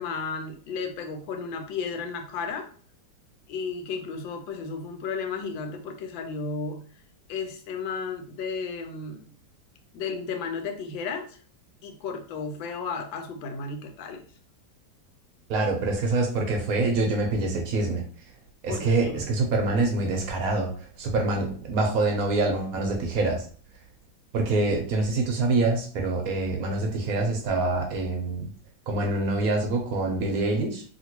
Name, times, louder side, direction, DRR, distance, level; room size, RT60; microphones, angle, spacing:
voice 1, 0.0-2.7 3.5-6.8 7.3-9.2 9.9-11.4 11.8-14.2 18.7-19.3, left 5 dB, 85° left, 5 dB, 1.3 m, -33 dB
voice 2, 15.5-18.0 18.6-20.7 21.0-23.4 24.3-28.5 28.9-30.8, right 2 dB, 65° right, 2 dB, 0.9 m, -25 dB
2.9 x 2.9 x 2.9 m, 0.43 s
omnidirectional pair, 2.0 m